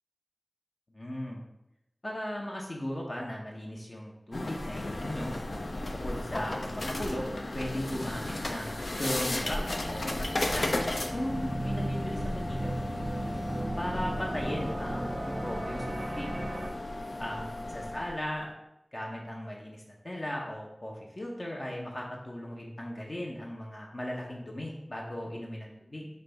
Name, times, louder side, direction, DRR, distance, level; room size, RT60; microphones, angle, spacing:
voice 1, 0.9-1.4 2.0-5.4 5.9-7.3 7.5-10.8 11.1-12.8 13.8-16.3 17.2-18.5 18.9-26.1, left 1 dB, 50° left, -2 dB, 0.7 m, -37 dB
sound 1, 4.3-18.3, left 1 dB, 85° left, 0.4 m, -35 dB
sound 2, 9.8-16.7, right 1 dB, 55° right, 0.5 m, -36 dB
5.1 x 2.3 x 3.9 m, 0.87 s
wide cardioid pair, 55°, 0 cm